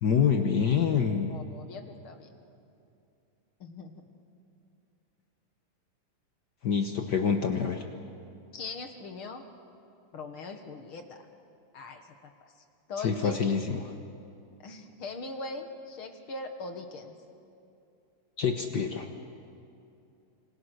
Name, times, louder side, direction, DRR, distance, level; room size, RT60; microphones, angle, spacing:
voice 1, 0.0-1.4 6.6-7.8 13.0-13.9 18.4-19.1, left 6 dB, 75° left, 5 dB, 0.9 m, -26 dB
voice 2, 1.3-2.3 3.6-4.1 8.5-9.5 10.1-11.3 11.7-12.5 12.9-13.5 14.6-17.1, left 3 dB, 50° left, 6 dB, 1.9 m, -41 dB
26.5 x 25.0 x 6.5 m, 2.7 s
omnidirectional pair, 3.5 m